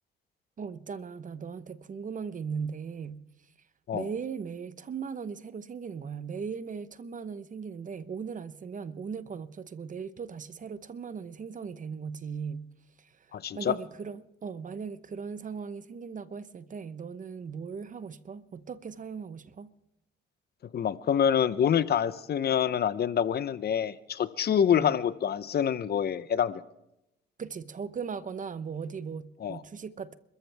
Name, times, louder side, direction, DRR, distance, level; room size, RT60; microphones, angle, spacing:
voice 1, 0.6-3.2 3.9-12.7 13.0-13.2 13.5-19.7 24.7-25.0 27.4-30.2, right 6 dB, 40° right, 1.0 m, -38 dB
voice 2, 13.3-13.7 20.7-26.6 29.4-29.6, left 8 dB, 55° left, 0.8 m, -26 dB
29.5 x 14.0 x 3.5 m
cardioid pair, 90°, 20 cm